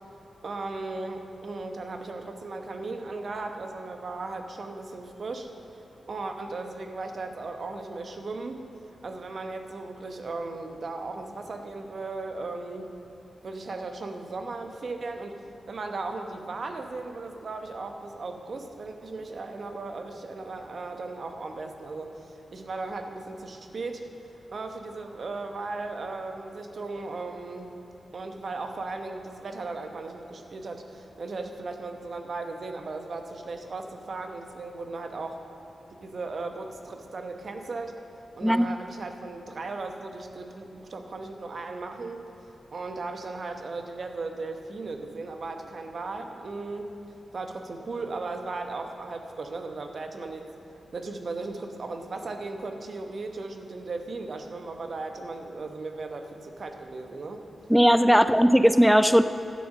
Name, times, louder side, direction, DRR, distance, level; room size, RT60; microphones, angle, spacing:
voice 1, 0.4-5.5 6.1-8.6 9.0-12.9 13.4-15.4 15.7-24.0 24.5-27.7 28.1-35.4 36.0-38.0 38.3-42.2 42.7-46.9 47.3-50.5 50.9-57.4 58.1-58.3, right 3 dB, 65° right, 5 dB, 1.0 m, -36 dB
voice 2, 57.7-59.2, equal, 5° right, 12 dB, 0.3 m, -18 dB
12.0 x 7.4 x 6.5 m, 2.8 s
cardioid pair, 45°, 0 cm